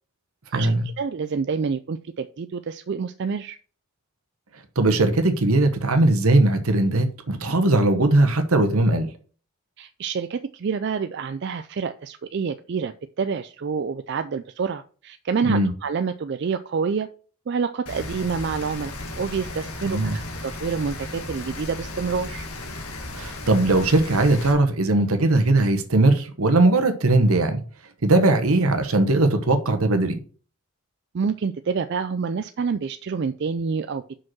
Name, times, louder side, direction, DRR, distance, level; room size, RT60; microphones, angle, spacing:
voice 1, 0.5-3.6 9.8-17.1 17.5-22.5 31.1-34.2, right 5 dB, 50° right, 0.3 m, -28 dB
voice 2, 4.8-9.1 15.4-15.7 19.9-20.2 23.1-27.6 28.0-30.1, right 2 dB, 75° right, 1.1 m, -19 dB
Rain, 17.9-24.5, left 2 dB, 90° left, 1.6 m, -35 dB
5.8 x 5.2 x 6.1 m
head